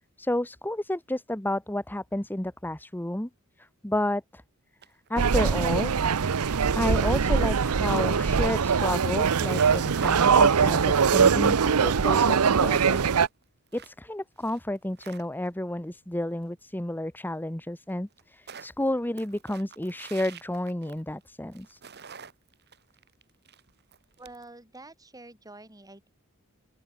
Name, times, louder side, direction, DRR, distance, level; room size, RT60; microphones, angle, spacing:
voice 1, 0.2-3.3 3.6-4.4 5.1-5.9 6.7-13.0 13.7-21.8, left 1 dB, 10° left, 1.1 m, -31 dB
sound 1, 4.8-5.5 5.8-7.7 8.0-10.9 11.3-11.4 11.8-14.0 14.4-15.6 17.2-17.3 17.5-17.6 17.9-21.2 21.5-24.5, right 8 dB, 50° right, 2.9 m, -48 dB
sound 2, 5.2-13.3, right 6 dB, 90° right, 0.7 m, -22 dB
voice 2, 24.2-26.1, right 2 dB, 15° right, 6.8 m, -47 dB
open air
head